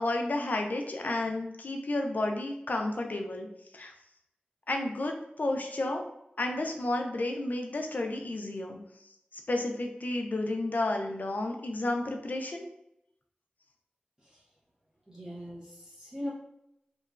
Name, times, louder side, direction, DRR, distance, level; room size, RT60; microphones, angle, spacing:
voice 1, 0.0-3.5 3.7-3.9 4.7-6.0 6.4-8.8 9.5-12.6, left 2 dB, 55° left, 3 dB, 0.4 m, -31 dB
voice 2, 15.1-16.3, equal, 20° right, -7 dB, 0.6 m, -40 dB
2.8 x 2.3 x 2.3 m, 0.81 s
wide cardioid pair, 65°, 3 cm